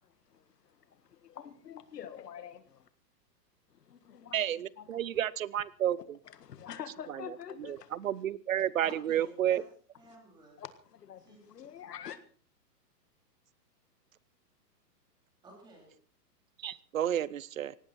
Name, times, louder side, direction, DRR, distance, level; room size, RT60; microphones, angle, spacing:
voice 1, 0.3-2.6 3.8-4.4 4.8-5.0 6.3-8.0 10.6-12.2, left 9 dB, 70° left, 1.8 m, -46 dB
voice 2, 4.3-6.2 7.1-7.2 7.6-9.6 16.6-17.8, right 11 dB, 55° right, 0.8 m, -31 dB
voice 3, 8.8-9.6 10.0-10.6 11.2-11.5 15.4-15.9, right 2 dB, 10° right, 3.7 m, -51 dB
18.0 x 16.5 x 4.2 m
hypercardioid pair, 180°, 49 cm